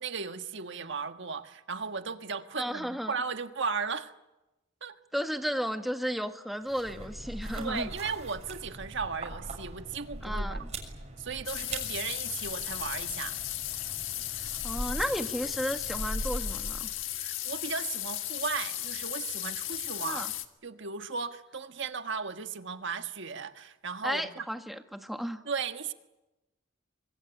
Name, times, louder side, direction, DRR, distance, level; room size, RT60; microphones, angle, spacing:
voice 1, 0.0-4.1 4.8-4.9 7.5-10.6 11.2-13.4 17.1-20.3 20.6-24.5 25.4-25.9, right 5 dB, 65° right, 8 dB, 1.5 m, -36 dB
voice 2, 2.6-3.1 5.1-7.9 10.2-10.7 14.6-16.9 20.0-20.3 24.0-25.4, equal, ahead, 6 dB, 1.6 m, -33 dB
sound 1, 6.6-17.0, right 1 dB, 35° right, 6.6 m, -40 dB
sound 2, 11.4-20.4, left 13 dB, 70° left, 1.6 m, -36 dB
24.5 x 23.0 x 9.9 m, 1.0 s
head